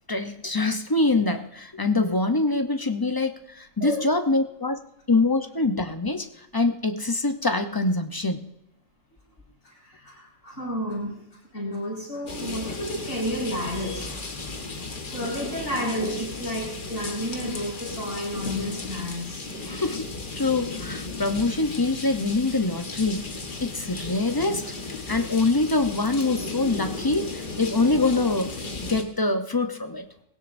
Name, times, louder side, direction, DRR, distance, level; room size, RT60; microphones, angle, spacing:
voice 1, 0.1-4.8 5.1-6.3 6.5-8.5 19.6-20.0 20.3-23.3 23.6-24.6 25.1-30.1, left 3 dB, 25° left, 7 dB, 0.6 m, -24 dB
voice 2, 10.0-11.2 11.5-14.5 15.1-19.6, equal, 85° left, -3 dB, 6.1 m, -31 dB
sound 1, 12.3-29.0, left 3 dB, 40° left, 1.4 m, -35 dB
20.0 x 17.0 x 2.6 m, 0.81 s
omnidirectional pair, 1.3 m